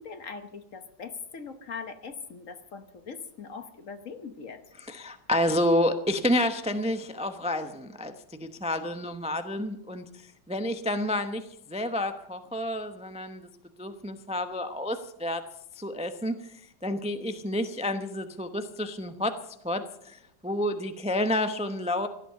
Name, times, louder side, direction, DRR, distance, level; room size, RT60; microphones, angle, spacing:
voice 1, 0.0-4.6, left 5 dB, 50° left, 9 dB, 1.4 m, -41 dB
voice 2, 4.8-8.1 8.4-13.4 13.8-15.4 15.8-19.4 19.6-22.1, left 1 dB, 10° right, 8 dB, 0.4 m, -29 dB
16.5 x 12.0 x 6.7 m, 0.77 s
omnidirectional pair, 1.9 m